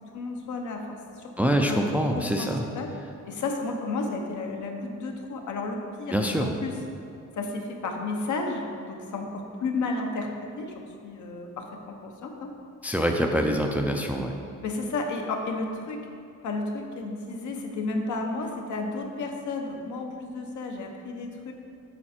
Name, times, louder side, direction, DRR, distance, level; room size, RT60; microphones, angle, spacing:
voice 1, 0.1-2.5 2.7-2.9 3.2-6.8 7.3-12.5 14.6-16.1 16.4-21.5, left 3 dB, 70° left, 3 dB, 1.0 m, -32 dB
voice 2, 1.4-2.6 6.1-6.5 12.8-14.3, equal, 5° right, 3 dB, 0.4 m, -25 dB
8.8 x 5.8 x 4.3 m, 2.5 s
wide cardioid pair, 160°, 30 cm